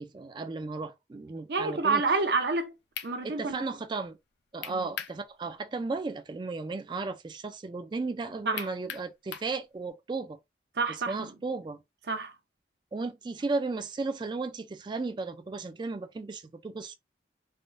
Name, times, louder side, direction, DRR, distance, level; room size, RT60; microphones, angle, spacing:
voice 1, 0.0-2.0 3.2-4.2 4.5-10.4 11.1-11.8 12.9-17.0, right 3 dB, 25° right, 0.3 m, -35 dB
voice 2, 1.5-2.7 3.0-3.6 4.7-4.9 8.5-8.7 10.8-11.3 12.1-12.3, right 4 dB, 60° right, 0.6 m, -28 dB
sound 1, 2.5-2.6 2.9-3.1 4.6-5.2 5.6-5.7 8.6-9.5, left 8 dB, 65° left, 0.4 m, -38 dB
3.5 x 2.1 x 2.5 m
head